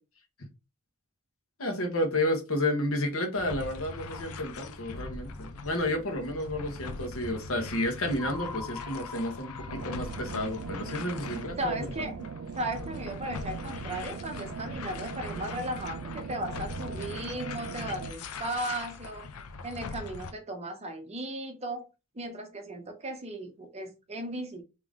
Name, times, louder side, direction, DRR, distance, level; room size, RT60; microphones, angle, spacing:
voice 1, 1.6-11.9, left 1 dB, 70° left, 1.2 m, -31 dB
sound 1, 3.3-20.3, left 4 dB, 85° left, 0.6 m, -42 dB
sound 2, 8.2-12.4, left 4 dB, 15° left, 0.6 m, -45 dB
sound 3, 9.7-18.1, right 5 dB, 60° right, 0.3 m, -40 dB
voice 2, 11.6-12.2 12.5-19.3 19.6-21.9 22.1-24.6, right 1 dB, 30° right, 0.8 m, -36 dB
3.6 x 3.0 x 3.6 m
head